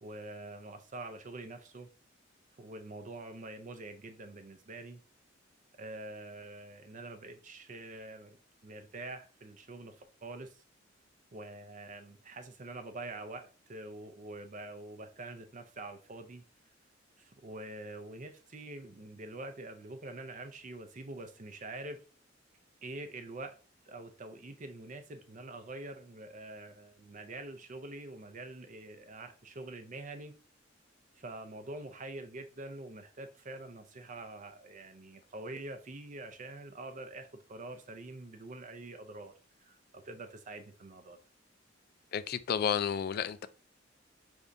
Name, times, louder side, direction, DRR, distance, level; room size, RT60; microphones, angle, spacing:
voice 1, 0.0-1.9 2.6-5.0 5.8-8.4 8.6-10.6 11.3-16.4 17.2-22.0 22.8-23.6 23.9-30.3 31.2-39.3 39.6-41.2, right 2 dB, 40° right, 0.5 m, -45 dB
voice 2, 42.1-43.5, left 7 dB, 50° left, 0.3 m, -31 dB
5.0 x 3.4 x 2.6 m
head